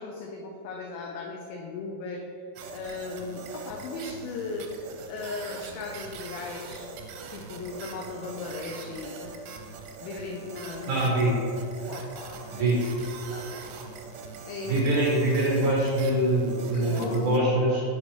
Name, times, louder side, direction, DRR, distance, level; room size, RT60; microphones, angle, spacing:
voice 1, 0.0-2.2 2.7-4.7 5.1-6.9 7.3-9.4 10.0-11.1 11.9-12.7 13.3-13.6 14.5-14.8 16.7-17.5, left 4 dB, 85° left, 1 dB, 2.0 m, -37 dB
sound 1, 2.6-17.4, right 4 dB, 85° right, 2.7 m, -42 dB
voice 2, 10.9-11.3 12.5-12.8 14.7-17.8, right 1 dB, 65° right, -5 dB, 2.1 m, -24 dB
8.2 x 6.7 x 3.2 m, 2.6 s
omnidirectional pair, 4.8 m